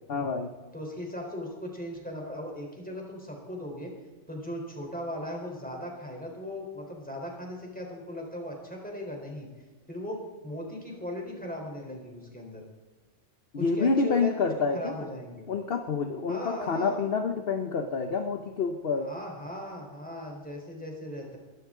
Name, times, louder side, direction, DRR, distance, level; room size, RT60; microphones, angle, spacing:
voice 1, 0.1-0.5 13.5-14.9 15.5-19.1, left 4 dB, 55° left, 6 dB, 1.1 m, -28 dB
voice 2, 0.7-3.9 4.3-9.5 9.9-10.2 10.4-12.6 13.5-14.4 14.7-15.5 16.3-17.1 18.9-21.4, left 1 dB, 5° left, 0 dB, 3.8 m, -38 dB
21.5 x 13.0 x 3.8 m, 1.3 s
omnidirectional pair, 1.3 m